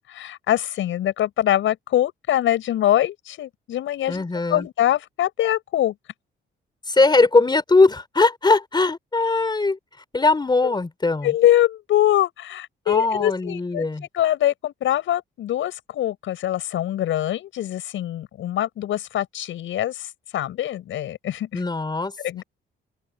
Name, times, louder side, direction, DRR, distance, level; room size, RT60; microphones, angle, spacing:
voice 1, 0.1-4.2 4.5-5.9 10.6-10.7 11.2-13.9 14.1-21.6 22.2-22.4, left 12 dB, 80° left, 7.7 m, -23 dB
voice 2, 4.1-4.7 6.9-9.8 10.1-11.3 12.9-14.1 21.5-22.1, left 3 dB, 20° left, 4.0 m, -20 dB
open air
cardioid pair, 90°, 20 cm